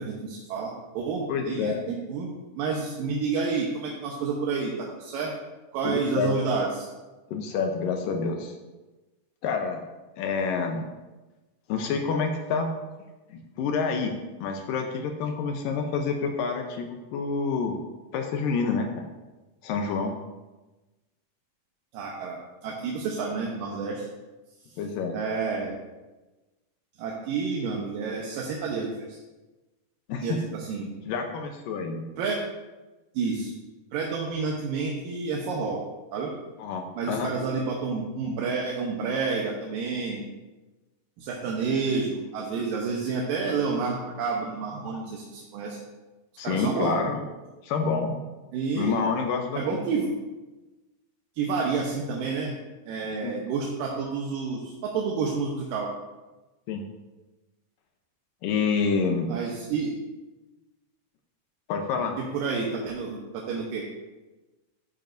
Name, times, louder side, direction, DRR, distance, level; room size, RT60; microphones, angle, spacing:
voice 1, 0.0-2.3 2.6-5.3 5.7-6.9 21.9-24.1 25.1-25.7 27.0-29.2 30.2-30.9 32.2-32.4 33.1-33.5 33.9-35.8 36.1-36.3 37.0-40.3 41.2-45.8 46.4-47.0 48.5-49.0 49.5-50.1 51.4-52.5 52.9-55.9 59.3-60.0 62.2-63.9, right 4 dB, 80° right, -2 dB, 2.7 m, -29 dB
voice 2, 1.3-1.8 5.8-6.3 7.3-8.5 9.4-9.8 10.2-10.8 11.7-12.7 13.3-14.1 14.4-17.8 18.1-18.9 19.6-20.1 24.8-25.2 30.1-30.4 31.1-32.1 36.6-37.3 46.4-47.2 47.6-48.2 48.8-49.6 53.2-53.3 56.7-56.8 58.4-59.3 61.7-62.2, left 5 dB, 80° left, 4 dB, 2.5 m, -28 dB
13.0 x 9.1 x 2.7 m, 1.1 s
omnidirectional pair, 4.0 m